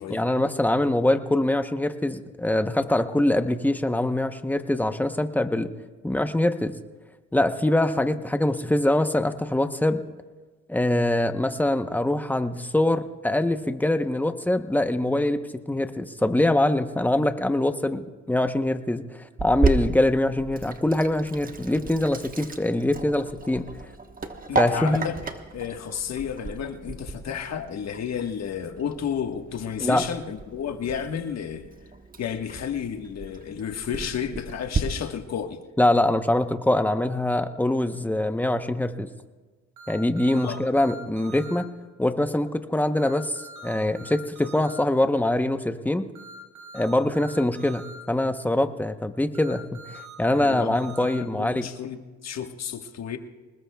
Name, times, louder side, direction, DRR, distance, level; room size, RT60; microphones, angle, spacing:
voice 1, 0.1-5.7 6.0-6.7 7.3-10.0 10.7-23.7 24.6-25.0 29.8-30.0 35.8-39.1 39.9-41.7 42.0-46.1 46.7-51.7, left 1 dB, 5° left, 9 dB, 0.9 m, -24 dB
Sink (filling or washing), 19.4-34.8, right 4 dB, 30° right, 1.2 m, -33 dB
voice 2, 24.5-25.2 25.5-31.7 32.2-35.6 40.4-40.6 50.2-53.2, left 8 dB, 60° left, 6 dB, 1.4 m, -32 dB
sound 1, 39.8-41.6 43.0-44.8 46.2-48.0 49.3-51.2, right 3 dB, 90° right, 5.8 m, -44 dB
25.5 x 20.0 x 2.3 m, 1.3 s
cardioid pair, 90°, 30 cm